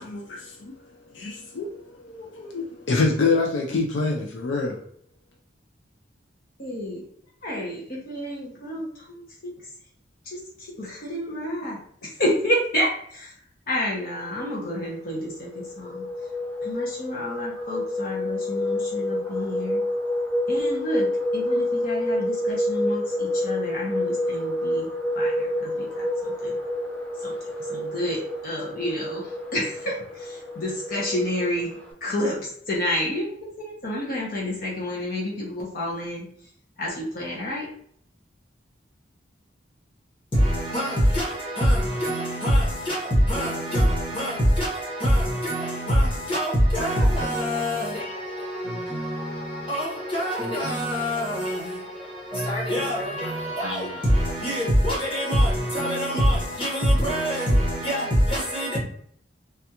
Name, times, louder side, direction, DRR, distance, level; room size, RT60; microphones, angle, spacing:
voice 1, 0.0-4.8, left 3 dB, 75° left, 0.4 m, -26 dB
voice 2, 6.6-7.0 7.4-9.2 10.2-13.3 13.7-16.0 16.6-19.8 20.5-26.6 27.2-27.3 27.7-31.7 32.0-36.2 36.8-37.7, left 1 dB, 50° left, 0.7 m, -30 dB
sound 1, 14.2-31.9, left 1 dB, 5° left, 0.5 m, -28 dB
voice 3, 40.3-58.8, equal, 30° left, 1.3 m, -24 dB
3.3 x 2.3 x 2.8 m
head